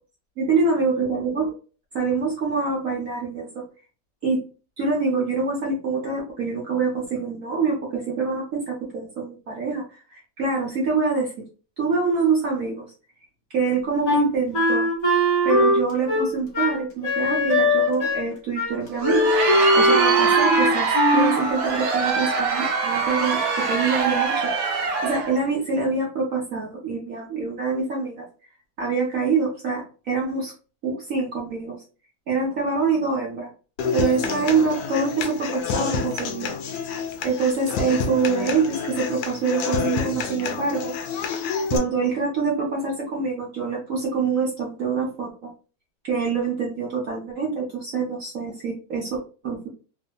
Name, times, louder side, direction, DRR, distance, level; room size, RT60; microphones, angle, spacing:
voice 1, 0.4-1.5 1.9-3.6 4.2-4.4 4.8-11.3 11.8-12.9 13.5-14.9 15.4-19.2 19.8-24.7 25.0-28.2 28.8-30.5 30.8-31.8 32.3-33.5 33.9-36.5 37.2-40.9 41.7-45.5 46.0-49.7, right 4 dB, 60° right, -2 dB, 0.9 m, -25 dB
Wind instrument woodwind instrument, 14.0-18.3 18.6-18.8 19.0-21.3, equal, 45° left, 1.2 m, -20 dB
Crowd, 18.8-25.4, right 4 dB, 90° right, 1.5 m, -24 dB
Human voice / Acoustic guitar, 33.8-41.8, left 5 dB, 70° left, 0.9 m, -28 dB
3.3 x 2.7 x 2.2 m, 0.36 s
omnidirectional pair, 2.1 m